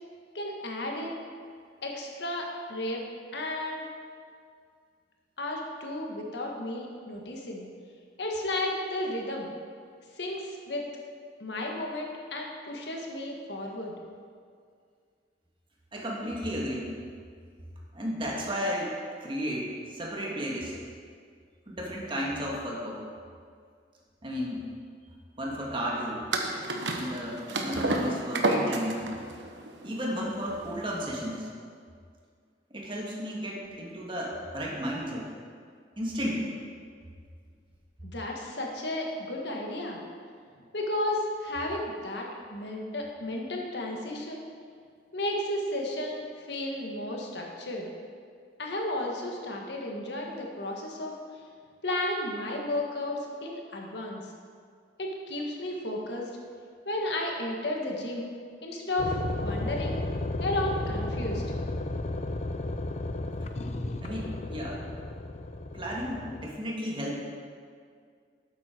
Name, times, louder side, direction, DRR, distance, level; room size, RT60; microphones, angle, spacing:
voice 1, 0.3-1.2 1.8-3.0 3.3-3.8 5.4-7.6 8.2-9.5 10.1-10.8 11.4-13.9 38.0-40.0 40.6-44.4 45.1-47.9 48.6-51.1 51.8-54.2 55.0-56.3 56.8-58.3 58.6-60.0 60.4-61.4, left 1 dB, 70° left, 0 dB, 1.7 m, -33 dB
voice 2, 15.9-16.9 17.9-20.8 21.7-23.0 24.2-24.7 25.4-26.3 27.0-29.1 29.8-31.5 32.7-35.3 36.0-36.5 64.0-64.8 65.7-67.2, equal, 30° right, -3 dB, 1.9 m, -33 dB
sound 1, 26.3-31.4, right 2 dB, 80° right, 1.2 m, -30 dB
sound 2, 59.0-66.5, left 2 dB, 40° left, 0.6 m, -33 dB
12.5 x 8.6 x 4.5 m, 2.1 s
head